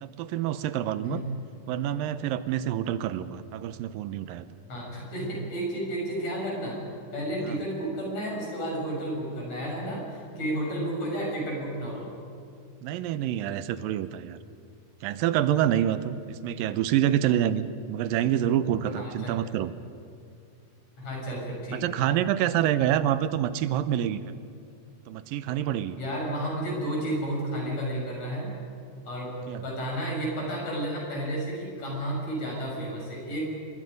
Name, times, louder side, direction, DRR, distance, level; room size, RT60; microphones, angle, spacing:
voice 1, 0.0-1.2 1.7-4.5 7.5-7.6 12.8-14.4 15.0-19.7 21.8-24.3 25.1-26.0 29.5-29.6, right 11 dB, 90° right, 13 dB, 2.5 m, -27 dB
voice 2, 4.7-6.8 7.1-12.1 18.9-19.3 21.0-21.8 26.0-28.5 29.1-33.5, right 1 dB, 50° left, -2 dB, 7.3 m, -32 dB
28.0 x 22.5 x 5.3 m, 2.4 s
omnidirectional pair, 4.0 m